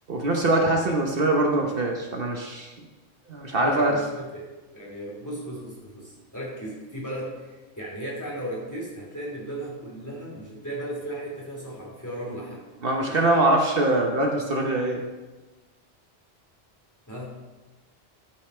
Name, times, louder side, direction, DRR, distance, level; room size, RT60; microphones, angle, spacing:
voice 1, 0.1-2.7 3.3-4.0 12.8-15.0, right 2 dB, 60° right, 1 dB, 1.2 m, -23 dB
voice 2, 3.5-4.4 4.7-12.6 17.1-17.3, right 1 dB, 15° left, -4 dB, 2.8 m, -36 dB
12.5 x 5.6 x 4.4 m, 1.2 s
omnidirectional pair, 1.1 m